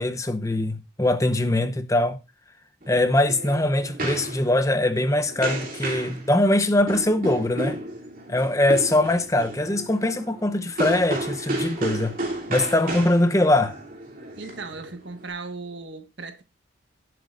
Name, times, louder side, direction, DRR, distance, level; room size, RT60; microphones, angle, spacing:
voice 1, 0.0-2.2 2.9-7.8 8.3-12.2 12.5-13.8, left 1 dB, 15° left, 0.8 m, -22 dB
sound 1, 2.8-15.3, right 1 dB, 45° right, 2.9 m, -33 dB
voice 2, 14.4-16.4, right 3 dB, 65° right, 1.6 m, -37 dB
17.0 x 7.8 x 2.5 m
head